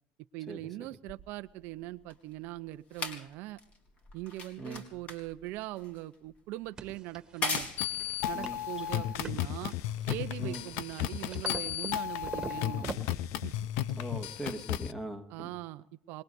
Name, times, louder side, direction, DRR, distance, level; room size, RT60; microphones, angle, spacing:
voice 1, 0.3-3.6 4.1-7.7 8.2-9.7 10.1-13.0 13.4-13.5 15.3-16.2, right 16 dB, 65° right, 11 dB, 0.7 m, -41 dB
sound 1, 1.1-9.7 10.5-10.6, left 3 dB, 35° left, 4.1 m, -41 dB
sound 2, 6.8-13.2, right 5 dB, 20° right, 2.1 m, -44 dB
sound 3, 7.5-14.9, left 12 dB, 70° left, 0.8 m, -34 dB
voice 2, 13.9-15.5, right 1 dB, 10° left, 7 dB, 2.0 m, -40 dB
26.5 x 20.5 x 2.7 m, 0.68 s
supercardioid pair, 130°, 4 cm